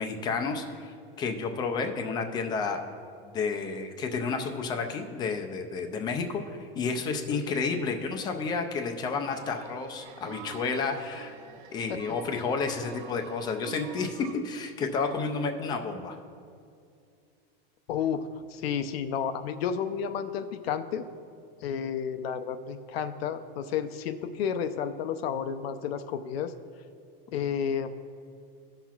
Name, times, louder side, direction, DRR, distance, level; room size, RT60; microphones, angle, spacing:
voice 1, 0.0-2.8 3.3-11.3 11.7-16.2, left 4 dB, 15° left, 4 dB, 0.3 m, -31 dB
sound 1, 9.1-14.3, right 8 dB, 55° right, 0.7 m, -46 dB
voice 2, 17.9-18.2 18.5-21.0 21.6-26.5 27.3-27.9, left 7 dB, 80° left, 10 dB, 0.6 m, -31 dB
17.0 x 5.8 x 2.3 m, 2.4 s
supercardioid pair, 155°, 30 cm